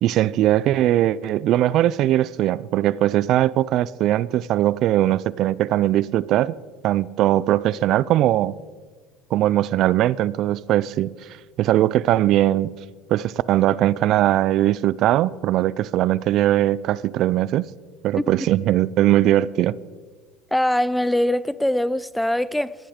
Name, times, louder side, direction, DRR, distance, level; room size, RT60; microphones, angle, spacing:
voice 1, 0.0-6.6 6.8-8.5 9.3-11.1 11.6-12.7 13.1-17.7 18.0-19.8, right 13 dB, 60° right, 0.4 m, -20 dB
voice 2, 20.5-22.8, left 1 dB, 5° left, 0.4 m, -22 dB
16.0 x 12.0 x 5.0 m
supercardioid pair, 100°, 0 cm